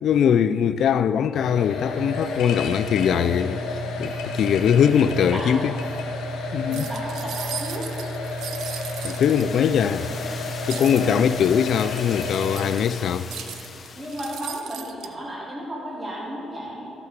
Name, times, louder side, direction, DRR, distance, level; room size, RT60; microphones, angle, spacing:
voice 1, 0.0-5.7 6.5-6.9 9.0-10.1 10.7-13.3, left 8 dB, 70° left, 0.4 m, -21 dB
sound 1, 1.3-12.7, left 2 dB, 90° left, 1.3 m, -31 dB
voice 2, 5.1-5.5 6.6-7.9 10.9-11.3 14.0-16.9, equal, 20° right, 2.7 m, -34 dB
sound 2, 6.7-9.8 10.7-12.9 13.3-15.1, right 9 dB, 80° right, 0.5 m, -37 dB
sound 3, 8.2-14.7, left 5 dB, 50° left, 0.8 m, -40 dB
12.5 x 6.1 x 6.6 m
cardioid pair, 90°, 0 cm